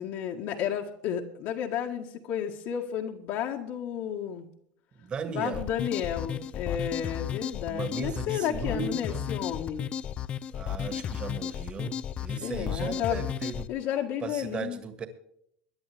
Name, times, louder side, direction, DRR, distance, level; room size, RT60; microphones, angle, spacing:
voice 1, 0.0-4.5 5.3-9.9 12.4-13.3 13.7-14.8, left 9 dB, 65° left, -1 dB, 1.7 m, -32 dB
voice 2, 4.9-5.7 7.7-9.3 10.5-13.7 14.2-15.1, right 5 dB, 25° right, 10 dB, 1.8 m, -37 dB
sound 1, 5.5-13.7, left 9 dB, 30° left, 0.5 m, -34 dB
22.0 x 11.0 x 3.4 m, 0.70 s
cardioid pair, 155°, 4 cm